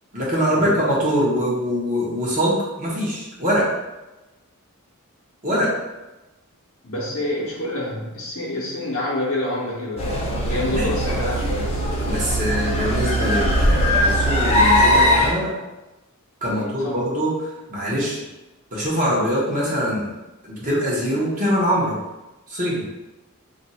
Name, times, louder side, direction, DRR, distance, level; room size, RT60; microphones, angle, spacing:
voice 1, 0.1-3.6 5.4-5.7 10.5-10.9 12.0-15.5 16.4-18.2 18.7-20.1 20.4-21.9 22.5-22.8, equal, 35° right, -6 dB, 0.9 m, -23 dB
voice 2, 6.8-11.7 16.5-17.0, left 1 dB, 65° left, -6 dB, 0.7 m, -27 dB
sound 1, 10.0-15.3, equal, 30° left, 0.5 m, -20 dB
2.5 x 2.3 x 4.0 m, 1.0 s
head